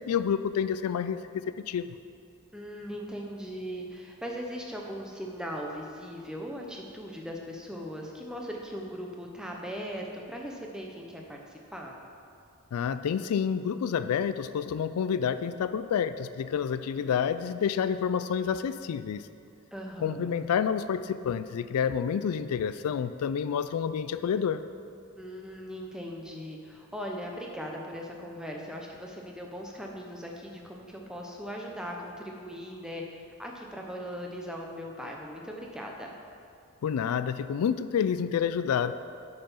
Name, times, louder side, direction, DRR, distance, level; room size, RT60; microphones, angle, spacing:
voice 1, 0.0-2.0 12.7-19.3 20.0-24.6 36.8-38.9, left 7 dB, 85° left, 13 dB, 0.3 m, -29 dB
voice 2, 2.5-12.0 19.7-20.3 25.2-36.1, equal, 5° right, 0 dB, 0.8 m, -39 dB
8.7 x 5.7 x 5.6 m, 2.4 s
head